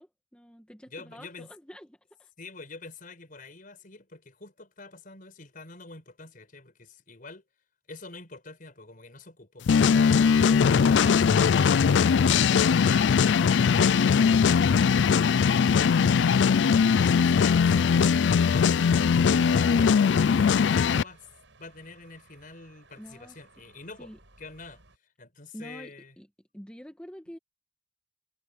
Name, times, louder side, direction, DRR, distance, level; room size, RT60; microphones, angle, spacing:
voice 1, 0.0-2.3 23.0-23.4 24.0-24.2 25.5-26.3 26.5-27.4, equal, 5° left, 1.7 m, -46 dB
voice 2, 0.9-1.5 2.4-7.4 7.9-21.3 21.6-24.1 24.4-26.1, left 3 dB, 50° left, 5.1 m, -47 dB
sound 1, 9.7-21.0, left 6 dB, 70° left, 0.4 m, -20 dB
sound 2, 14.0-25.0, right 2 dB, 80° right, 6.3 m, -58 dB
head